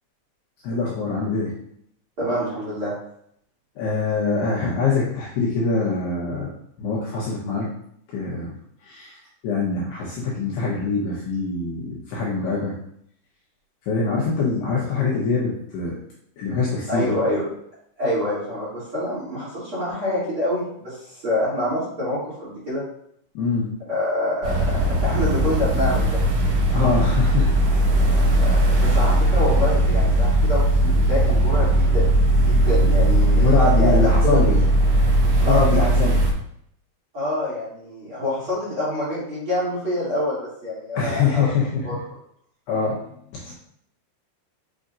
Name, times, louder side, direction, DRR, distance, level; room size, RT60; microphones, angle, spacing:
voice 1, 0.6-1.5 3.8-6.5 6.8-7.7 8.1-8.5 8.8-9.2 9.4-12.7 13.8-16.0 16.4-17.1 23.3-23.7 26.7-27.5 33.4-34.6 35.4-36.2 40.9-41.8 42.7-43.0 43.3-43.5, left 4 dB, 70° left, -5 dB, 2.7 m, -24 dB
voice 2, 2.2-2.9 16.9-17.4 18.0-22.8 23.9-26.2 28.0-32.1 32.4-34.6 35.4-36.1 37.1-41.5 41.8-42.0, left 1 dB, 35° right, -9 dB, 2.6 m, -26 dB
sound 1, 24.4-36.3, right 1 dB, 70° right, 2.0 m, -18 dB
6.8 x 5.7 x 2.6 m, 0.70 s
omnidirectional pair, 5.6 m